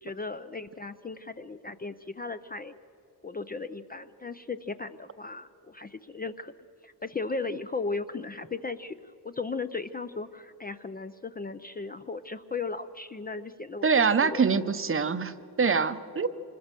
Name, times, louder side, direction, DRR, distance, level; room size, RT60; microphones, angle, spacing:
voice 1, 0.0-2.7 3.2-6.5 6.8-9.0 9.2-14.5, left 4 dB, 20° left, 10 dB, 0.5 m, -36 dB
voice 2, 13.8-16.3, right 5 dB, 30° right, 12 dB, 0.7 m, -24 dB
26.0 x 20.5 x 6.7 m, 2.8 s
cardioid pair, 120°, 43 cm